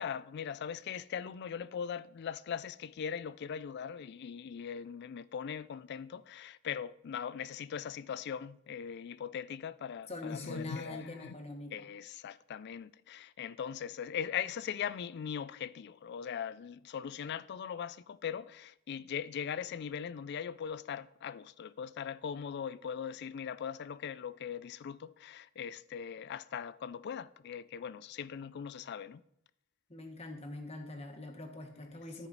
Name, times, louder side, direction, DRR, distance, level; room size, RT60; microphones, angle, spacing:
voice 1, 0.0-11.3 11.7-29.2, left 7 dB, 55° left, 0.3 m, -40 dB
voice 2, 10.1-11.9 29.9-32.3, left 2 dB, 30° left, 1.3 m, -43 dB
13.5 x 4.9 x 4.0 m
head